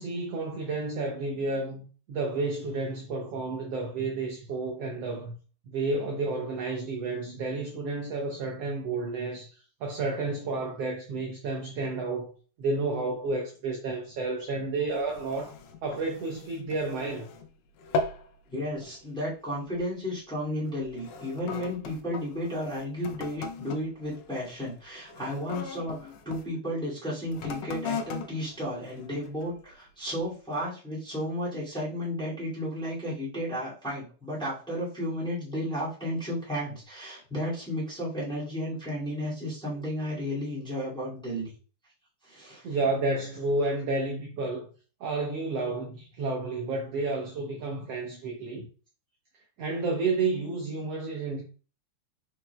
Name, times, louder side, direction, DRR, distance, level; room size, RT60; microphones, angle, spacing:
voice 1, 0.0-5.3 5.7-12.3 12.6-15.5 15.8-17.3 42.6-44.7 45.0-48.7 49.6-51.4, right 3 dB, 70° right, 1.6 m, -31 dB
sound 1, 14.9-17.5 17.8-18.3 18.7-19.0 19.7-19.9 20.7-26.5 27.3-29.6 30.2-30.3, left 4 dB, 90° left, 2.2 m, -38 dB
voice 2, 18.5-41.5 42.2-42.8, equal, ahead, 1.8 m, -33 dB
5.2 x 4.6 x 2.3 m
omnidirectional pair, 3.4 m